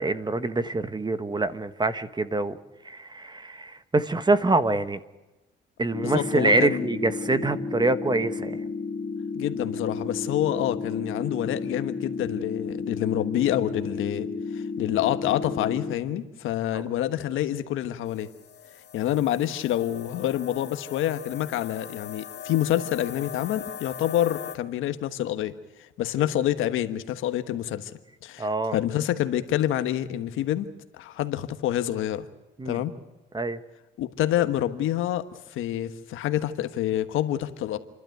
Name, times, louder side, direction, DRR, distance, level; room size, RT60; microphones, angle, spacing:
voice 1, 0.0-2.6 2.8-5.0 5.8-8.6 16.7-16.8 28.4-28.8 32.6-32.8 33.3-33.6, right 2 dB, 20° right, 12 dB, 1.4 m, -25 dB
sound 1, 5.9-15.9, left 4 dB, 35° left, 1.8 m, -33 dB
voice 2, 6.0-6.9 9.3-14.3 14.5-18.3 18.9-25.5 26.0-27.9 28.2-30.7 31.0-32.2 32.6-32.9 34.0-35.2 35.5-37.8, left 12 dB, 90° left, 11 dB, 1.3 m, -27 dB
sound 2, 18.1-24.6, left 8 dB, 60° left, 1.9 m, -41 dB
29.0 x 12.5 x 9.3 m, 1.1 s
cardioid pair, 90°, 20 cm